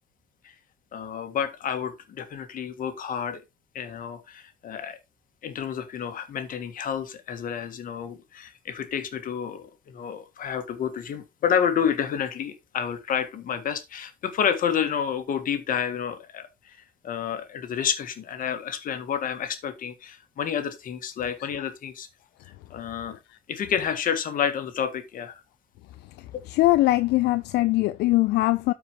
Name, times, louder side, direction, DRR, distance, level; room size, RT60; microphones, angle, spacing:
voice 1, 0.9-3.4 3.7-5.0 5.4-16.8 17.0-22.1 22.7-23.2 23.5-25.4 26.3-26.4, left 8 dB, 55° left, 1.7 m, -29 dB
voice 2, 26.5-28.7, left 18 dB, 80° left, 0.5 m, -21 dB
12.5 x 4.9 x 3.0 m
cardioid pair, 110°, 17 cm